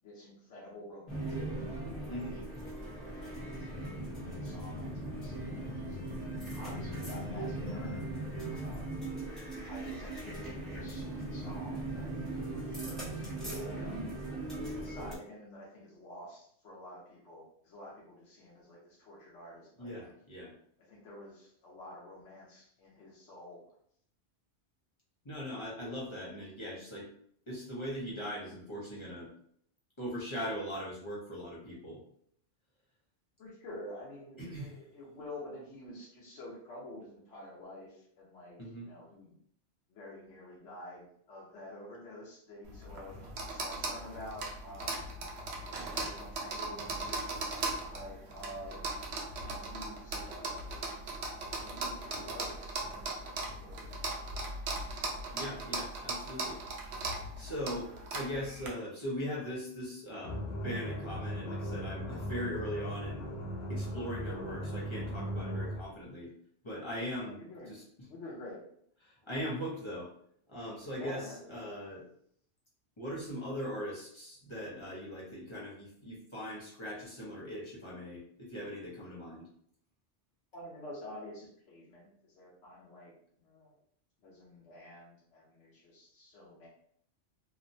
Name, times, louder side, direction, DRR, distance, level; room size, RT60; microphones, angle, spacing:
voice 1, 0.0-1.5 1.9-2.8 3.0-6.0 6.6-8.8 9.7-13.9 14.7-20.1 20.9-23.7 33.4-39.4 39.9-45.0 45.5-47.4 47.9-49.0 49.4-50.7 51.6-54.0 67.3-67.8 68.1-68.6 70.9-71.4 80.5-83.1 83.4-83.7 84.2-86.7, left 1 dB, 80° left, -5 dB, 1.0 m, -49 dB
sound 1, 1.1-15.1, right 1 dB, ahead, 0.8 m, -39 dB
voice 2, 2.1-2.4 19.8-20.5 25.2-27.1 27.5-29.3 30.0-32.0 34.4-34.8 38.6-38.9 55.3-56.6 57.4-60.3 60.6-63.3 63.7-66.3 66.6-67.4 67.7-67.8 69.0-70.1 70.5-72.0 73.0-79.5, equal, 30° left, -6 dB, 0.7 m, -40 dB
sound 2, 42.7-58.7, right 2 dB, 70° right, 0.8 m, -39 dB
sound 3, 60.2-65.9, equal, 60° left, 0.8 m, -38 dB
2.8 x 2.1 x 2.6 m, 0.66 s
omnidirectional pair, 1.2 m